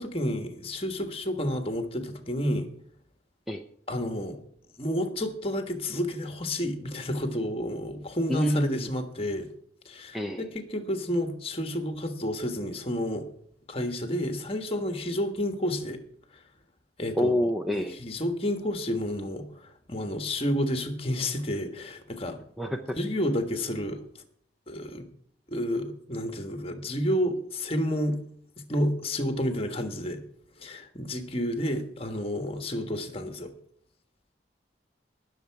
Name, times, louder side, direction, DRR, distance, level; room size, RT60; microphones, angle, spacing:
voice 1, 0.0-2.7 3.9-4.4 4.8-9.5 9.8-13.3 13.7-16.0 17.0-17.3 17.7-19.5 19.9-22.4 22.9-24.0 24.7-25.1 25.5-28.2 28.7-30.2 30.6-33.5, equal, 30° left, 6 dB, 1.5 m, -30 dB
voice 2, 8.3-8.8 10.1-10.4 17.2-18.0 22.6-23.0, equal, ahead, 4 dB, 0.7 m, -27 dB
19.0 x 6.9 x 4.7 m, 0.66 s
head